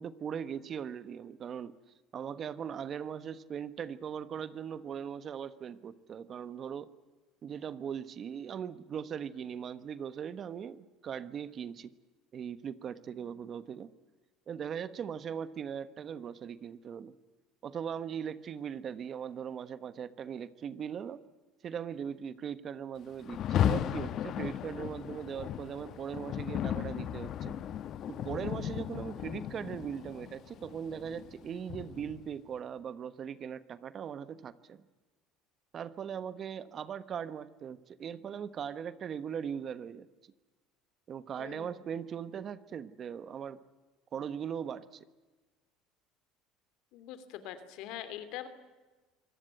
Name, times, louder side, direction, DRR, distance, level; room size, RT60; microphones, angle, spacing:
voice 1, 0.0-1.7 2.1-6.9 7.4-11.9 12.3-13.9 14.5-17.1 17.6-21.2 21.6-27.5 28.1-34.8 35.7-40.1 41.1-43.6 44.1-45.0, right 8 dB, 40° right, 15 dB, 1.2 m, -39 dB
Rain, 23.2-32.3, left 10 dB, 50° left, 1.1 m, -35 dB
voice 2, 41.4-41.7 46.9-48.5, left 11 dB, 70° left, 12 dB, 2.9 m, -43 dB
25.0 x 18.0 x 9.2 m, 1.2 s
supercardioid pair, 110°, 0 cm